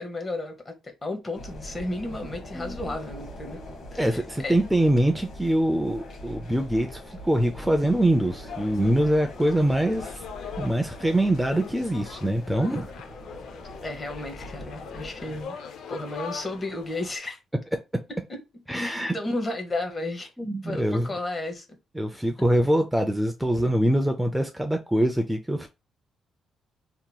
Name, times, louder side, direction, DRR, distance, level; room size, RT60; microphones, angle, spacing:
voice 1, 0.0-3.6 3.9-4.6 13.8-15.6 15.9-17.4 18.1-18.4 18.7-20.3 20.6-21.6, left 2 dB, 30° left, 0.9 m, -33 dB
sound 1, 1.4-15.4, equal, 60° left, 1.0 m, -42 dB
voice 2, 2.5-2.9 4.0-10.2 10.6-12.9 18.7-19.1 20.4-21.1 22.0-25.7, right 1 dB, 5° right, 0.4 m, -24 dB
sound 2, 8.5-17.2, left 6 dB, 75° left, 0.5 m, -41 dB
2.9 x 2.8 x 2.2 m
cardioid pair, 90°, 0 cm